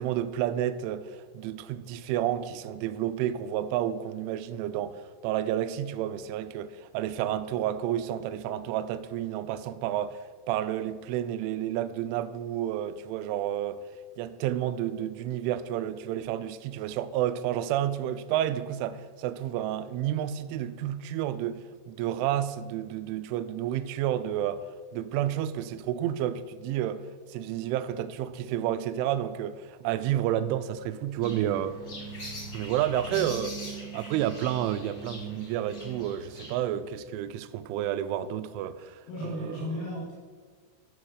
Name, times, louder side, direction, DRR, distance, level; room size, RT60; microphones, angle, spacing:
voice 1, 0.0-10.2 10.5-13.8 14.2-24.6 24.9-27.0 27.3-31.8 32.5-33.6 33.9-39.9, right 11 dB, 85° right, 2.7 m, -30 dB
sound 1, 31.2-36.7, right 2 dB, 65° left, 0.7 m, -40 dB
voice 2, 39.1-40.1, left 1 dB, 85° left, 5.4 m, -35 dB
12.0 x 4.8 x 6.4 m
omnidirectional pair, 5.9 m